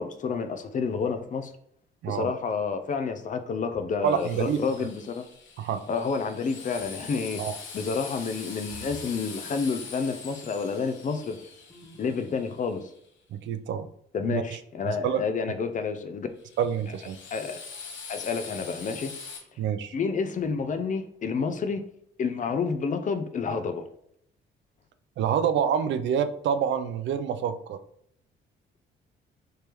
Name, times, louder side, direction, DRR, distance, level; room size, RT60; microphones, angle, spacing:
voice 1, 0.0-1.5 2.1-5.2 5.9-7.4 7.7-11.4 12.0-12.9 14.1-16.3 17.3-17.6 18.1-19.1 19.9-21.8 22.2-23.9, left 5 dB, 40° left, 0.5 m, -29 dB
sound 1, 3.7-4.2 6.7-7.2 8.7-9.2 11.7-12.4, left 1 dB, 10° left, 1.4 m, -49 dB
voice 2, 4.0-4.6 5.6-5.8 7.4-7.6 13.3-13.9 14.3-14.4 14.8-15.2 16.6-17.2 19.6-19.9 25.2-27.8, right 8 dB, 70° right, 0.4 m, -27 dB
Drill, 4.1-13.0 16.4-19.4, left 5 dB, 70° left, 0.9 m, -43 dB
3.3 x 2.9 x 3.4 m
cardioid pair, 90°, 20 cm